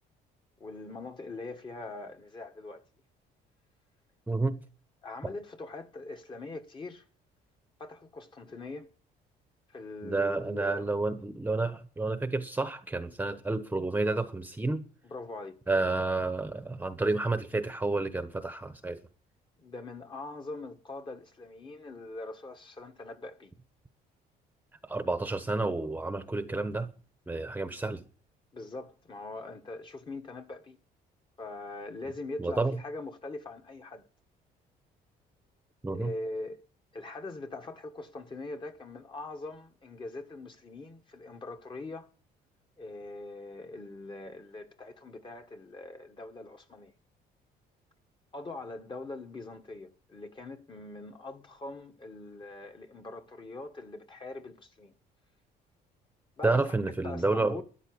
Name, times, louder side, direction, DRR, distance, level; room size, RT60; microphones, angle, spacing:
voice 1, 0.6-2.8 5.0-7.1 7.8-8.9 9.7-10.9 15.0-15.6 19.6-23.5 28.5-30.8 31.4-34.1 35.9-36.6 36.9-42.1 42.8-46.9 48.3-54.9 56.4-56.6 57.0-57.6, left 2 dB, 30° left, 1.7 m, -42 dB
voice 2, 4.3-4.6 10.0-14.8 15.7-19.0 24.9-26.9 27.3-28.0 32.4-32.7 35.8-36.1 56.4-57.6, right 3 dB, 10° right, 1.1 m, -30 dB
13.5 x 10.0 x 8.7 m
cardioid pair, 110°, 17 cm